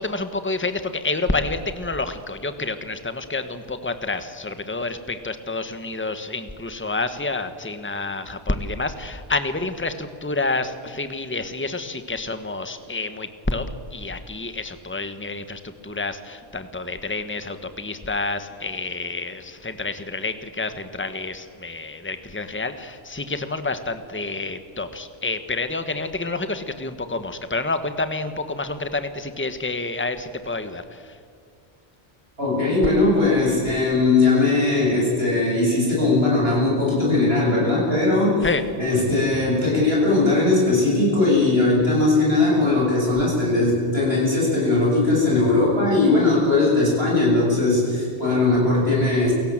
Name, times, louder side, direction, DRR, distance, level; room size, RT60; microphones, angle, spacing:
voice 1, 0.0-13.7 13.9-31.2 38.4-38.6, left 3 dB, 10° left, 10 dB, 1.3 m, -28 dB
voice 2, 32.4-38.5 38.8-49.3, left 2 dB, 80° right, -4 dB, 8.0 m, -19 dB
29.0 x 17.0 x 7.5 m, 2.3 s
omnidirectional pair, 1.0 m